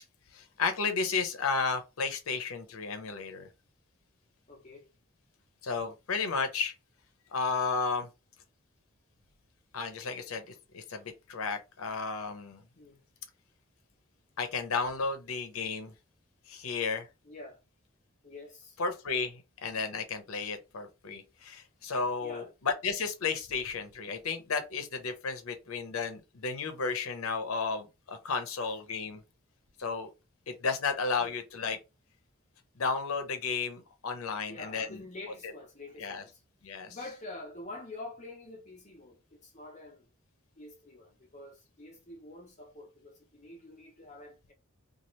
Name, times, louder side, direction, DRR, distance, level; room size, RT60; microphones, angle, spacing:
voice 1, 0.3-3.5 5.6-6.7 7.3-8.1 9.7-12.6 14.4-15.9 16.5-17.1 18.8-29.2 29.8-30.1 30.5-31.8 32.8-35.0 35.4-35.5 36.0-36.2 36.6-37.0, left 4 dB, 90° left, 0.6 m, -33 dB
voice 2, 4.5-4.9 12.8-13.0 17.2-17.6 18.2-18.8 22.2-22.5 25.8-25.9 31.2-31.3 34.5-36.4 36.9-40.1 40.6-44.5, left 2 dB, 35° left, 0.8 m, -47 dB
2.8 x 2.4 x 3.1 m
head